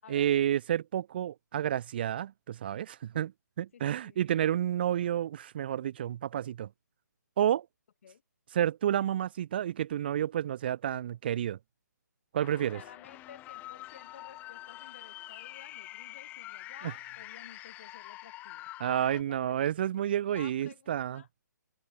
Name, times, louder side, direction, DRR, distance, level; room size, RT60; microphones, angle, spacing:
voice 1, 0.1-3.3 3.6-6.7 7.4-7.7 8.5-11.6 12.3-12.8 18.8-21.2, right 11 dB, 35° right, 0.6 m, -30 dB
voice 2, 3.7-4.2 8.0-8.2 12.7-19.6 20.2-21.3, left 8 dB, 45° left, 5.6 m, -54 dB
sound 1, 12.4-19.2, left 16 dB, 15° left, 4.8 m, -46 dB
figure-of-eight pair, 140°, 10 cm